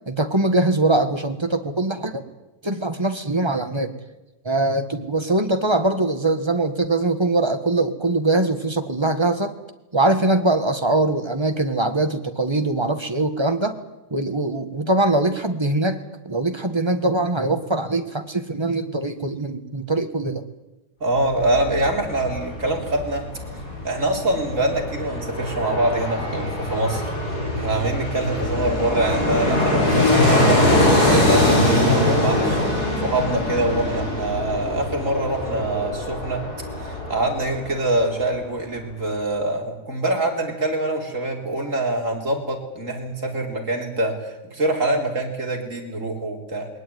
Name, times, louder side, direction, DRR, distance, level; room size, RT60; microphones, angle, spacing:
voice 1, 0.1-2.2 2.6-3.9 4.4-9.5 9.9-13.8 14.1-20.4, right 2 dB, 15° right, 7 dB, 1.3 m, -22 dB
voice 2, 21.0-23.2 23.8-27.1 27.6-36.4 36.8-46.7, right 2 dB, 40° right, 1 dB, 4.2 m, -24 dB
Fixed-wing aircraft airplane, 21.2-38.1 38.4-38.5, left 1 dB, 50° left, 6.5 m, -23 dB
21.0 x 19.0 x 9.4 m, 1.0 s
omnidirectional pair, 2.1 m